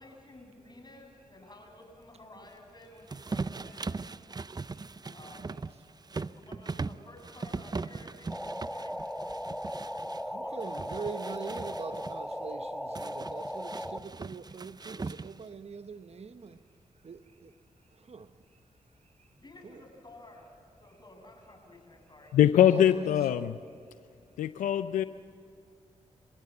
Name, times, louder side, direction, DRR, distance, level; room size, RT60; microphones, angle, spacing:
voice 1, 0.0-4.3 5.1-5.6 6.1-8.4 8.7-9.0 10.3-11.3 19.4-22.4, left 2 dB, 35° left, 7.8 m, -53 dB
sound 1, 3.1-10.2 10.6-12.2 13.0-15.5, right 4 dB, 30° right, 0.6 m, -39 dB
voice 2, 5.2-5.6 10.2-16.6 17.0-17.6 17.9-18.6 19.2-19.3 19.6-19.8 22.7-23.5, right 5 dB, 55° right, 0.9 m, -43 dB
sound 2, 8.3-14.0, equal, 5° left, 1.2 m, -37 dB
voice 3, 22.3-23.6 24.4-25.0, left 10 dB, 90° left, 0.5 m, -23 dB
30.0 x 15.5 x 7.9 m
supercardioid pair, 40°, 13 cm